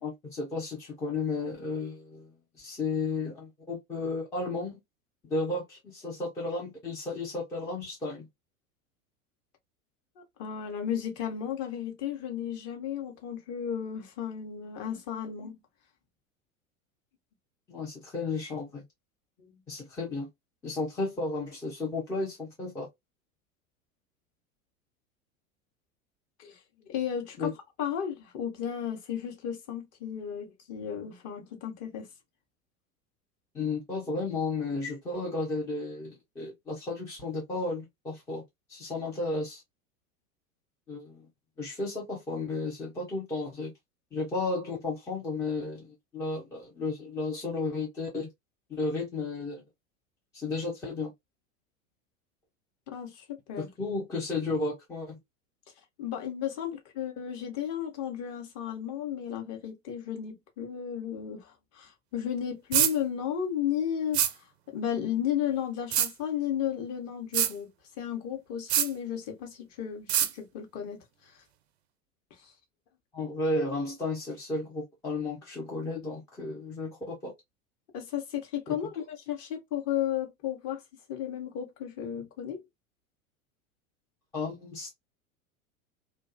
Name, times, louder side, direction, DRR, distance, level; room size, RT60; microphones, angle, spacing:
voice 1, 0.0-4.8 5.3-8.3 17.7-18.8 19.7-20.3 20.6-22.9 27.4-27.5 33.5-38.4 38.7-39.6 40.9-41.3 41.6-43.7 44.1-48.3 48.7-49.6 50.3-51.1 53.6-55.2 73.1-77.3 78.7-78.8 84.3-84.9, left 3 dB, 10° left, 0.4 m, -33 dB
voice 2, 10.2-15.6 19.4-19.6 26.4-27.5 27.8-32.1 52.9-53.7 56.0-67.7 68.0-71.3 72.4-72.5 77.9-80.8 81.1-82.6, left 9 dB, 35° left, 0.9 m, -34 dB
sound 1, 62.7-62.9 64.1-64.3 65.9-66.1 67.3-67.5 68.7-68.9 70.1-70.3, right 10 dB, 50° right, 0.4 m, -24 dB
2.4 x 2.2 x 2.4 m
figure-of-eight pair, 85°, 42 cm